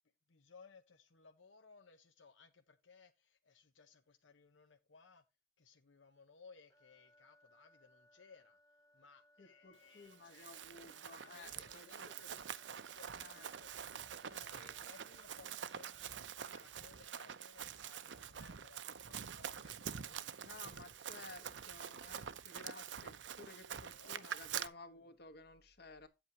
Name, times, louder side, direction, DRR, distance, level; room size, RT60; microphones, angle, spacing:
voice 1, 0.3-5.2 5.6-8.6 8.9-13.9 14.3-21.5 23.9-24.5 24.9-25.0, left 5 dB, 85° left, 0.9 m, -63 dB
sound 1, 6.7-16.6, left 1 dB, 20° left, 1.3 m, -69 dB
voice 2, 9.4-12.3 13.2-13.5 14.3-14.9 20.4-26.1, left 3 dB, 60° left, 1.5 m, -56 dB
Run, 10.1-24.7, right 8 dB, 70° right, 0.7 m, -46 dB
9.5 x 8.1 x 2.9 m
head